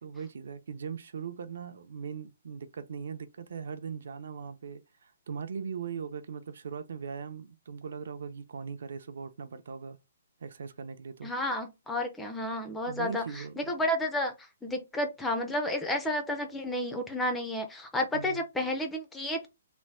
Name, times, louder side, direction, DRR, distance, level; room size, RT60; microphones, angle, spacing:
voice 1, 0.0-10.0 10.4-11.3 12.9-13.7 18.1-18.4, right 6 dB, 60° right, 0.5 m, -40 dB
voice 2, 11.2-14.3 14.6-19.5, left 1 dB, 5° left, 0.3 m, -31 dB
3.2 x 2.0 x 3.0 m
hypercardioid pair, 175°, 0 cm